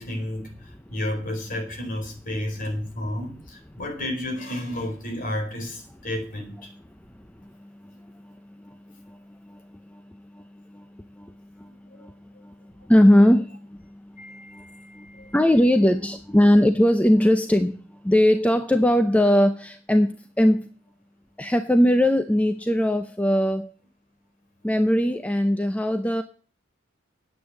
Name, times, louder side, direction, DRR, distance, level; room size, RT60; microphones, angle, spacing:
voice 1, 0.0-6.7 12.0-12.1 14.2-15.4, left 1 dB, 40° left, 4.3 m, -32 dB
voice 2, 12.9-13.6 14.5-14.6 15.0-15.1 15.3-17.8 18.0-20.7 21.4-23.7 24.6-26.2, left 1 dB, 5° left, 0.6 m, -19 dB
9.9 x 8.4 x 7.6 m
head